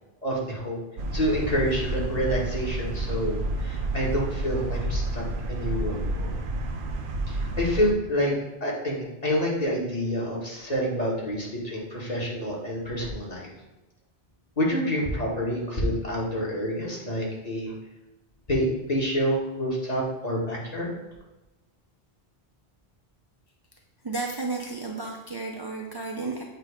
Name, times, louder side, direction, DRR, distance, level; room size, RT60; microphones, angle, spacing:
voice 1, 0.2-0.8 1.1-6.3 7.3-8.3 8.6-13.5 14.6-17.7 18.5-20.9, equal, 40° left, -4 dB, 1.6 m, -28 dB
sound 1, 1.0-7.9, right 2 dB, 60° right, 0.8 m, -30 dB
voice 2, 24.0-26.4, right 3 dB, 30° right, -1 dB, 0.5 m, -32 dB
7.6 x 2.8 x 4.9 m, 1.0 s
omnidirectional pair, 1.1 m